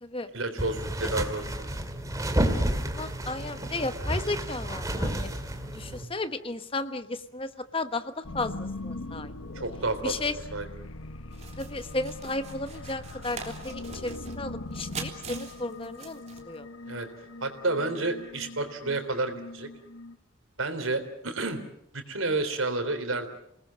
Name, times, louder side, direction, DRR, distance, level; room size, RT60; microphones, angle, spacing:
voice 1, 0.3-1.7 9.6-10.2 10.5-10.7 16.9-17.1 17.4-19.7 20.6-21.6 21.9-23.3, right 2 dB, 85° right, 7 dB, 3.6 m, -30 dB
sound 1, 0.6-6.0, right 1 dB, 15° right, 2.4 m, -30 dB
voice 2, 3.0-5.3 5.7-9.3 10.0-10.3 11.6-16.7, left 2 dB, 25° left, 10 dB, 1.2 m, -34 dB
sound 2, 8.2-20.2, left 2 dB, 85° left, 1.2 m, -41 dB
sound 3, 11.3-16.6, right 5 dB, 35° right, 3.2 m, -43 dB
28.0 x 19.5 x 7.5 m, 0.76 s
head